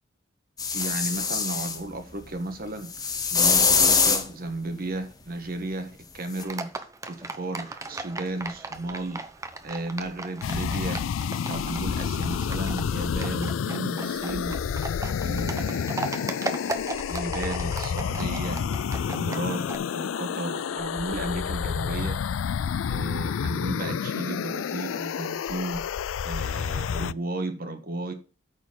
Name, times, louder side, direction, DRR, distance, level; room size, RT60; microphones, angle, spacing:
sound 1, 0.6-1.8 2.9-4.3 6.4-6.5, left 5 dB, 20° left, 1.1 m, -22 dB
voice 1, 0.7-9.2 9.6-11.0 11.4-14.6 15.2-18.6 19.1-19.6 19.9-22.2 22.9-25.8 26.2-28.1, right 2 dB, 50° right, 1.6 m, -34 dB
Livestock farm animals working animals, 6.4-19.8, right 2 dB, 15° right, 0.8 m, -38 dB
sound 2, 10.4-27.1, left 7 dB, 90° left, 0.3 m, -29 dB
9.0 x 4.3 x 6.9 m
head